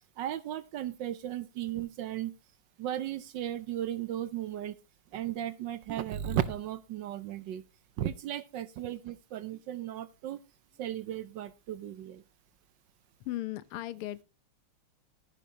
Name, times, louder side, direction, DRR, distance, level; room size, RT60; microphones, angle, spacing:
voice 1, 0.2-2.3 2.8-4.7 5.1-7.6 8.0-10.4 10.8-12.2, right 11 dB, 65° right, 1.2 m, -35 dB
voice 2, 13.2-14.2, left 15 dB, 85° left, 1.7 m, -37 dB
15.0 x 9.3 x 2.9 m
omnidirectional pair, 2.4 m